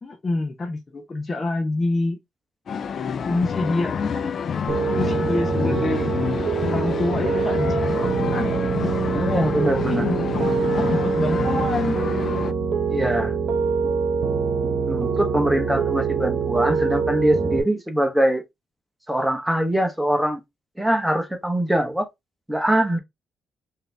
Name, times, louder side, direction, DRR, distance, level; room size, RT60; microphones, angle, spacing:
voice 1, 0.0-2.2 3.3-4.4 4.9-6.1 6.6-8.6 9.9-12.0, left 2 dB, 30° left, 0.9 m, -27 dB
sound 1, 2.7-12.5, left 6 dB, 55° left, 0.4 m, -28 dB
Piano, 4.7-17.6, right 5 dB, 60° right, 1.0 m, -24 dB
voice 2, 9.1-10.0 12.9-13.3 14.9-18.4 19.1-20.4 20.8-22.1 22.5-23.0, right 1 dB, 5° right, 1.1 m, -22 dB
3.9 x 2.8 x 3.3 m
cardioid pair, 90°, 0 cm